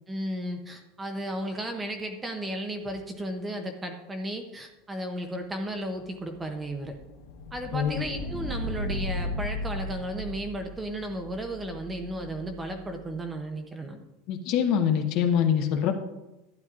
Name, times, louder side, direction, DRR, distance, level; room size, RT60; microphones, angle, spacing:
voice 1, 0.1-7.0 7.5-14.0, right 1 dB, 10° right, 5 dB, 0.6 m, -34 dB
sound 1, 6.0-12.8, left 1 dB, 85° left, 2.0 m, -36 dB
voice 2, 14.3-15.9, left 8 dB, 40° left, 5 dB, 0.9 m, -24 dB
12.0 x 9.6 x 2.4 m, 0.99 s
supercardioid pair, 180°, 0 cm